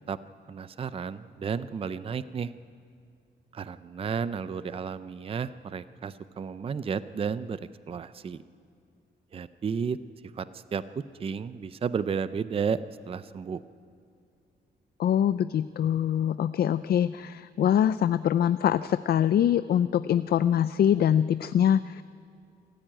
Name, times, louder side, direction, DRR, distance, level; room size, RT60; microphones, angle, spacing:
voice 1, 0.5-2.5 3.5-8.4 9.3-10.0 10.4-12.8 13.1-13.6, right 6 dB, 30° right, 14 dB, 0.5 m, -32 dB
voice 2, 15.0-22.0, left 9 dB, 55° left, 14 dB, 0.4 m, -24 dB
26.0 x 14.0 x 8.9 m, 2.5 s
wide cardioid pair, 155°, 19 cm